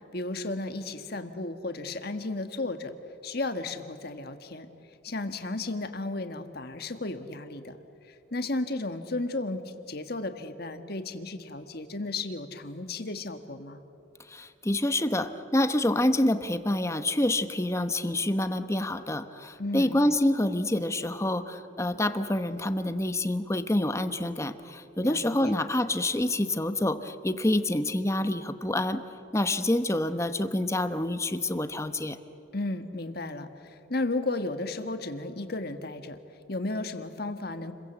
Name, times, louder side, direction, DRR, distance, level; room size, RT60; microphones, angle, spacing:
voice 1, 0.1-2.9 3.2-4.7 5.0-7.8 8.1-13.8 19.6-20.0 25.0-25.5 32.5-36.2 36.5-37.7, left 2 dB, 50° left, 7 dB, 1.6 m, -34 dB
voice 2, 14.3-29.0 29.3-32.2, left 1 dB, 15° left, 10 dB, 0.9 m, -27 dB
30.0 x 22.5 x 8.1 m, 2.8 s
head